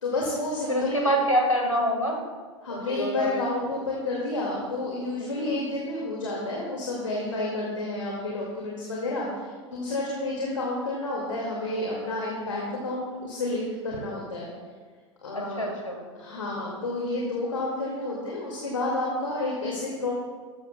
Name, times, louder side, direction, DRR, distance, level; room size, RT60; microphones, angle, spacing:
voice 1, 0.0-1.1 2.6-14.5 15.2-15.6 16.1-20.1, left 2 dB, 75° left, -4 dB, 2.2 m, -30 dB
voice 2, 0.7-2.2 2.7-3.4 5.2-5.6 15.3-16.0, equal, 90° left, 1 dB, 1.8 m, -26 dB
14.0 x 13.0 x 2.3 m, 1.5 s
figure-of-eight pair, 90°, 16 cm